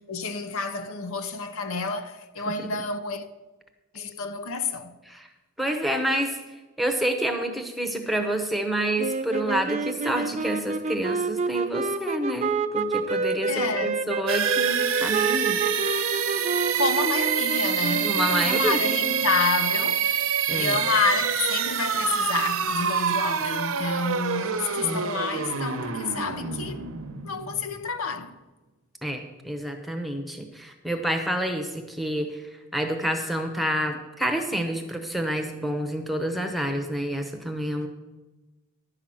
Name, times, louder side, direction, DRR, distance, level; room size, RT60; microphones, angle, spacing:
voice 1, 0.1-3.3 3.9-4.9 13.5-14.0 16.7-20.2 20.5-26.8 27.2-28.3, left 4 dB, 70° left, 0.7 m, -29 dB
voice 2, 5.6-6.4 6.8-15.6 18.0-18.8 20.5-20.8 24.8-25.0 29.0-32.4 32.7-37.9, right 1 dB, ahead, 0.8 m, -28 dB
sound 1, 9.0-19.7, right 3 dB, 30° right, 0.4 m, -29 dB
sound 2, 14.3-28.0, right 7 dB, 70° right, 0.8 m, -26 dB
11.0 x 5.8 x 7.7 m
head